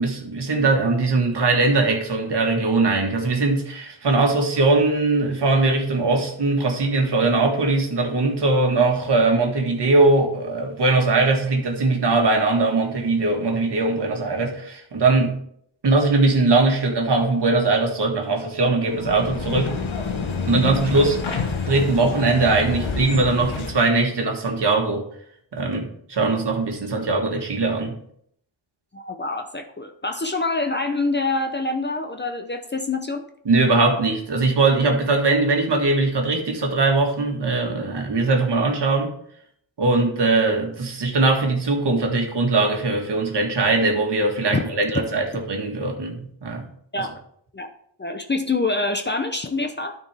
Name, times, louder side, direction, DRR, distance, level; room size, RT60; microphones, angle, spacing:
voice 1, 0.0-15.4 15.8-19.7 20.4-21.4 21.7-25.1 25.5-28.0 33.4-39.1 39.8-46.6, right 3 dB, 55° right, 2 dB, 1.7 m, -20 dB
sound 1, 18.8-23.9, left 4 dB, 70° left, 1.4 m, -28 dB
voice 2, 28.9-33.2 44.5-44.6 46.9-47.1 47.5-47.7 48.0-50.0, left 3 dB, 25° left, 5 dB, 0.7 m, -25 dB
12.5 x 4.5 x 3.4 m, 0.67 s
wide cardioid pair, 115°, 48 cm